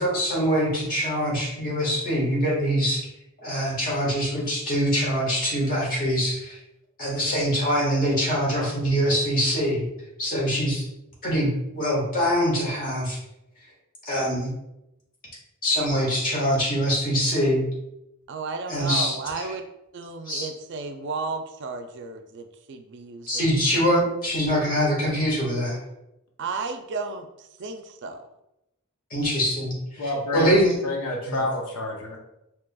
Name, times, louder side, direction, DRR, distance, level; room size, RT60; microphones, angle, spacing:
voice 1, 0.0-3.0 3.4-6.6 7.0-9.8 10.2-10.9 11.2-13.2 14.0-14.5 15.6-17.6 18.7-19.5 20.3-20.5 23.3-25.8 29.1-30.7 31.3-31.4, equal, 40° left, -4 dB, 1.4 m, -24 dB
voice 2, 18.3-19.6 19.9-23.5 26.4-28.2, right 4 dB, 55° right, 6 dB, 0.4 m, -33 dB
voice 3, 30.0-32.2, left 1 dB, 85° left, 0 dB, 0.7 m, -29 dB
4.7 x 2.9 x 2.2 m, 0.86 s
head